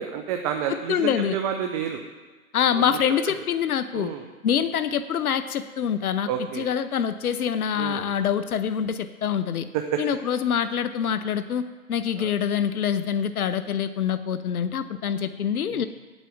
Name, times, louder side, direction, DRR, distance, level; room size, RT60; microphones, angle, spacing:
voice 1, 0.0-2.0 2.7-3.0 3.3-3.4 3.9-4.3 6.3-6.6 7.7-8.0 9.7-10.0 12.2-12.3 15.7-15.9, right 8 dB, 25° right, 5 dB, 0.7 m, -29 dB
voice 2, 0.9-1.4 2.5-4.1 4.4-9.7 10.0-11.6 11.9-15.9, left 8 dB, 75° left, 12 dB, 0.8 m, -25 dB
8.9 x 8.3 x 7.0 m, 1.3 s
hypercardioid pair, 135°, 44 cm